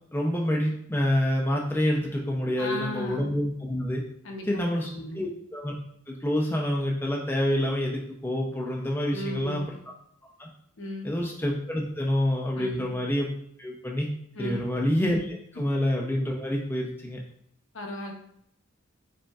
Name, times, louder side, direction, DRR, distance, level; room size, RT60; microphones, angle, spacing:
voice 1, 0.1-4.0 4.4-5.7 6.1-9.8 10.4-10.5 11.0-13.3 13.6-14.1 14.4-17.2, left 1 dB, 10° left, -2 dB, 0.5 m, -27 dB
voice 2, 2.6-3.3 4.2-4.6 5.0-5.2 9.1-9.7 10.8-11.2 12.6-12.8 14.3-14.7 17.7-18.1, left 1 dB, 60° left, 1 dB, 0.9 m, -35 dB
5.1 x 4.2 x 2.4 m, 0.70 s
head